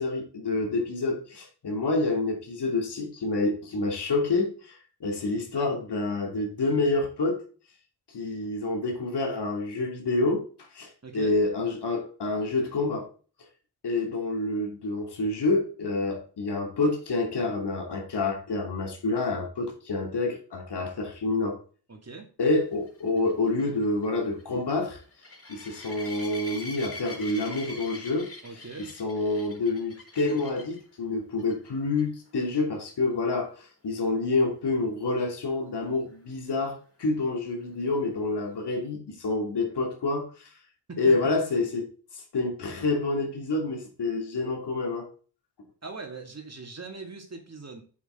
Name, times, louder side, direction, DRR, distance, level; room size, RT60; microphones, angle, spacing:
voice 1, 0.0-7.4 8.1-10.4 10.7-13.1 13.8-21.6 22.4-25.0 25.5-28.3 29.0-40.5 41.0-41.9 42.3-45.1, left 3 dB, 75° left, 2.9 m, -28 dB
voice 2, 11.0-11.3 21.9-22.3 28.4-28.9 40.9-41.1 45.8-47.8, right 4 dB, 40° right, 2.6 m, -41 dB
sound 1, 22.9-30.8 31.4-31.7 32.0-32.1 32.5-32.6 36.1-36.2, left 2 dB, 35° left, 4.2 m, -43 dB
8.6 x 7.3 x 3.9 m
cardioid pair, 55°, 40 cm